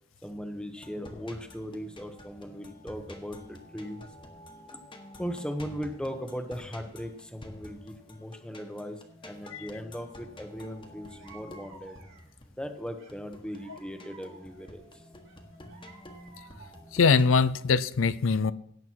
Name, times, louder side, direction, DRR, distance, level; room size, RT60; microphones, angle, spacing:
voice 1, 0.2-4.1 4.7-4.8 5.2-9.0 9.2-11.9 12.6-14.8, equal, 5° left, 6 dB, 1.2 m, -38 dB
sound 1, 0.8-17.4, left 1 dB, 25° left, 1.6 m, -50 dB
sound 2, 10.6-10.7 11.1-12.4 13.0-14.7 15.3-17.0, right 3 dB, 70° right, 4.0 m, -54 dB
voice 2, 16.9-18.5, left 5 dB, 90° left, 16 dB, 0.5 m, -23 dB
17.0 x 8.1 x 4.7 m, 0.70 s
head